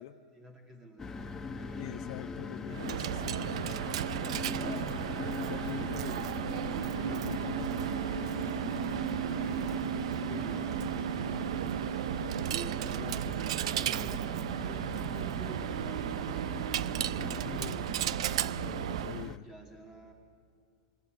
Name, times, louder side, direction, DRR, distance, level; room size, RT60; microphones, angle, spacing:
voice 1, 0.3-1.8 2.7-3.1 4.4-5.4 9.2-13.3 13.6-14.3 14.6-16.7 19.4-20.1, right 1 dB, 20° right, 2 dB, 2.1 m, -50 dB
sound 1, 1.0-19.4, left 4 dB, 15° left, 1.1 m, -41 dB
voice 2, 1.8-3.9 5.3-6.2 7.1-7.3 8.7-9.0 13.0-13.2 17.4-17.8 18.5-19.5, left 15 dB, 65° left, 11 dB, 0.6 m, -45 dB
Coin (dropping), 2.7-19.3, right 11 dB, 80° right, 0.5 m, -34 dB
24.5 x 20.5 x 7.8 m, 2.3 s
supercardioid pair, 140°, 3 cm